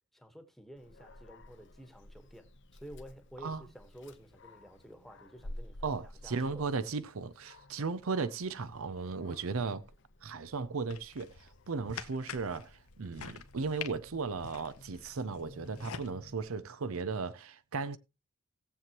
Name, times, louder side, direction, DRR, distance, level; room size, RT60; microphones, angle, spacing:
voice 1, 0.1-6.7, equal, ahead, 1.3 m, -51 dB
Dog, 0.8-16.5, left 1 dB, 55° left, 0.9 m, -53 dB
voice 2, 5.8-9.8 10.2-18.0, right 4 dB, 70° right, 0.6 m, -36 dB
sound 1, 10.9-16.1, left 7 dB, 85° left, 1.0 m, -47 dB
18.0 x 7.6 x 3.0 m
head